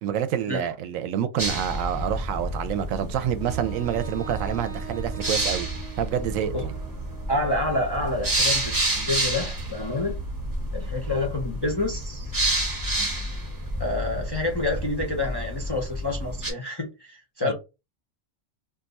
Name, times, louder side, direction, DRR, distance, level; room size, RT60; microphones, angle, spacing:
voice 1, 0.0-5.7 6.0-6.7 17.4-17.5, right 9 dB, 85° right, 1.0 m, -27 dB
sound 1, 1.4-16.5, right 1 dB, 20° right, 0.7 m, -30 dB
Wind instrument woodwind instrument, 3.4-7.4, right 8 dB, 50° right, 0.4 m, -42 dB
voice 2, 7.3-10.2 10.7-12.3 13.8-17.5, left 2 dB, 35° left, 0.4 m, -28 dB
2.6 x 2.3 x 4.0 m
omnidirectional pair, 1.3 m